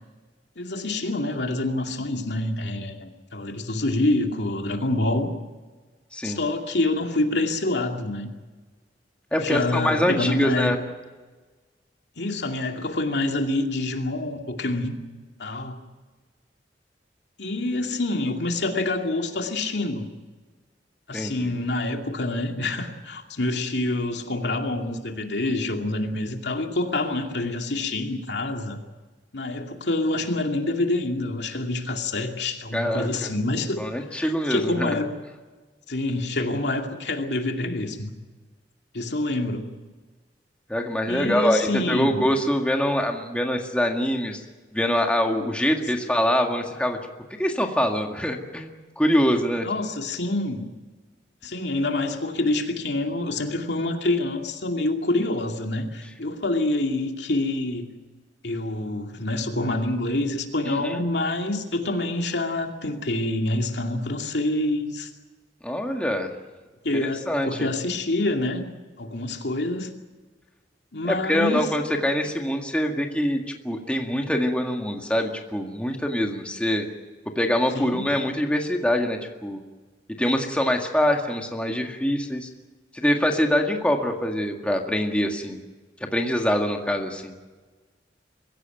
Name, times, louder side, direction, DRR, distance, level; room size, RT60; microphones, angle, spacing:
voice 1, 0.6-5.3 6.2-8.3 9.3-10.7 12.2-14.9 15.4-15.8 17.4-20.1 21.1-28.8 29.3-33.8 34.1-35.1 35.9-38.1 38.9-39.7 41.1-42.2 49.6-50.7 51.4-57.9 58.4-65.1 66.8-68.7 69.0-69.9 70.9-71.7 77.8-78.1, left 2 dB, 70° left, 3 dB, 2.5 m, -26 dB
voice 2, 9.3-10.8 21.1-21.5 32.7-33.3 33.8-35.0 40.7-44.4 44.7-47.0 47.4-49.7 60.6-61.0 65.6-66.3 66.9-67.7 71.0-76.9 77.4-79.6 80.1-82.5 82.9-85.6 86.1-87.3, equal, 5° left, 2 dB, 1.8 m, -24 dB
23.5 x 16.0 x 9.1 m, 1.3 s
head